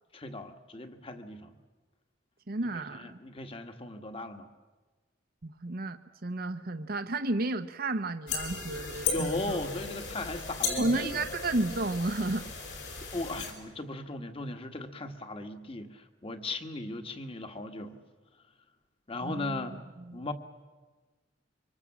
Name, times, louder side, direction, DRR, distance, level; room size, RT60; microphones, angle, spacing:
voice 1, 0.1-1.6 2.9-4.5 9.1-11.2 13.0-18.0 19.1-19.8 20.1-20.3, left 2 dB, 30° left, 6 dB, 1.6 m, -37 dB
voice 2, 2.5-3.2 5.4-9.6 10.8-12.5 19.2-20.3, right 2 dB, 50° right, 10 dB, 0.9 m, -32 dB
sound 1, 8.3-13.5, left 4 dB, 70° left, 5.5 m, -36 dB
26.0 x 24.5 x 7.3 m, 1.3 s
head